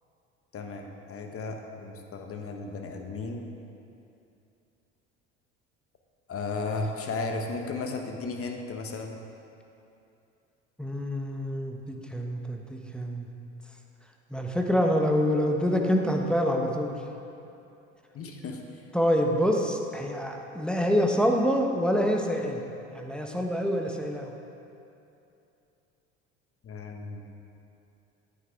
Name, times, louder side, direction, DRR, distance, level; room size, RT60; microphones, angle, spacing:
voice 1, 0.5-3.4 6.3-9.2 18.1-18.8 26.6-27.2, left 3 dB, 40° left, 3 dB, 1.3 m, -35 dB
voice 2, 10.8-13.3 14.3-17.0 18.9-22.6 22.9-24.3, equal, ahead, 1 dB, 1.1 m, -26 dB
10.0 x 8.7 x 3.6 m, 2.8 s
hypercardioid pair, 65°, 36 cm